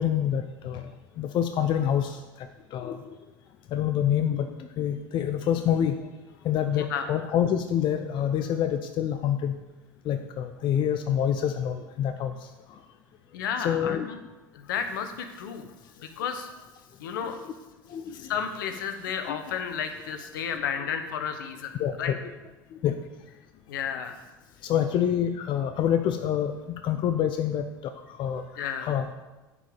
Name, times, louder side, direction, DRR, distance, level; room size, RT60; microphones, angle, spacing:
voice 1, 0.0-3.2 3.7-6.1 6.4-9.6 10.0-12.8 13.6-14.1 17.9-18.3 19.3-19.4 21.8-22.1 22.7-23.1 24.6-29.1, left 9 dB, 45° left, 8 dB, 0.7 m, -27 dB
voice 2, 13.3-14.2 14.5-15.7 16.0-16.5 17.0-17.4 18.1-21.7 22.0-22.1 23.7-24.2 28.6-28.9, left 7 dB, 75° left, 7 dB, 1.1 m, -32 dB
9.8 x 5.2 x 7.1 m, 1.1 s
hypercardioid pair, 75°, 11 cm